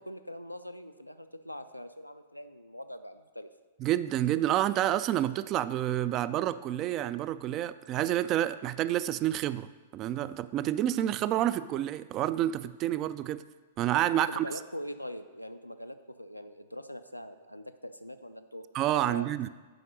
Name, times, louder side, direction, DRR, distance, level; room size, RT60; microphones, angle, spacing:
voice 1, 0.0-3.5 5.2-5.4 14.1-18.6 19.1-19.5, equal, 90° left, 8 dB, 0.5 m, -43 dB
voice 2, 3.8-9.7 9.9-13.4 13.8-14.5 18.7-19.5, right 12 dB, 30° right, 14 dB, 0.3 m, -29 dB
7.7 x 5.0 x 6.4 m, 1.4 s
figure-of-eight pair, 105°, 0 cm